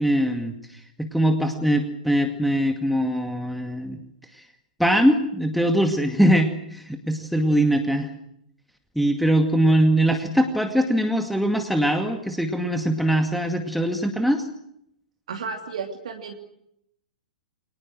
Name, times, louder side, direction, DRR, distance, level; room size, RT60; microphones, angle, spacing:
voice 1, 0.0-4.0 4.3-4.5 4.8-8.1 9.0-14.5, right 1 dB, ahead, 5 dB, 2.2 m, -22 dB
voice 2, 15.3-16.3, right 5 dB, 60° right, 4 dB, 2.9 m, -32 dB
29.5 x 24.5 x 6.2 m, 0.75 s
figure-of-eight pair, 105°, 4 cm